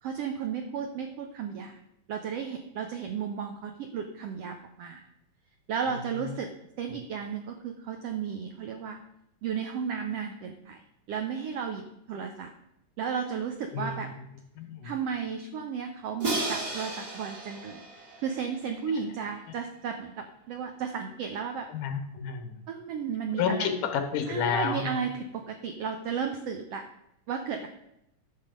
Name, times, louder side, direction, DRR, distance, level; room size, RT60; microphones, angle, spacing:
voice 1, 0.0-1.8 2.1-5.1 5.7-9.0 9.4-10.8 11.1-12.5 13.0-14.1 14.8-17.9 18.2-21.7 22.7-23.7 24.3-26.8 27.3-27.7, right 6 dB, 80° right, 5 dB, 1.3 m, -34 dB
voice 2, 13.7-14.1 14.6-14.9 21.7-22.6 23.4-25.1, left 7 dB, 85° left, 6 dB, 2.8 m, -30 dB
Crash cymbal, 16.2-19.2, right 2 dB, 35° right, 1.5 m, -34 dB
11.0 x 6.6 x 5.1 m, 0.83 s
omnidirectional pair, 3.7 m